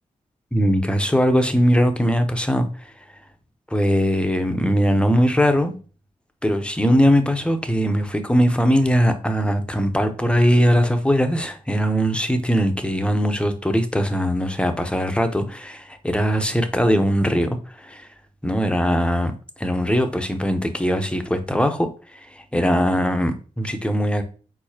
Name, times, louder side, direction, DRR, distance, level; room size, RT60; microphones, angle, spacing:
voice 1, 0.5-2.7 3.7-5.8 6.4-18.1 18.4-19.3 19.6-21.9 22.3-24.2, equal, 5° left, 0.9 m, -20 dB
4.7 x 3.9 x 2.9 m
supercardioid pair, 45°, 14 cm